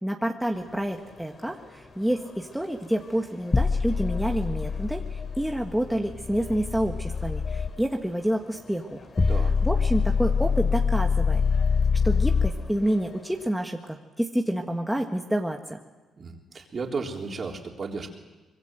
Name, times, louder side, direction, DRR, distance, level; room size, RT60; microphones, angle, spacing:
voice 1, 0.0-9.3 9.6-11.4 12.0-15.8, right 1 dB, 5° right, 2 dB, 1.5 m, -28 dB
sound 1, 0.5-13.5, left 4 dB, 45° left, 3.9 m, -49 dB
sound 2, 3.5-7.7 9.2-12.5, left 5 dB, 25° left, 1.0 m, -25 dB
voice 2, 16.2-18.1, right 4 dB, 40° right, 1 dB, 3.8 m, -34 dB
24.5 x 21.5 x 8.0 m, 1.2 s
cardioid pair, 90°, 0 cm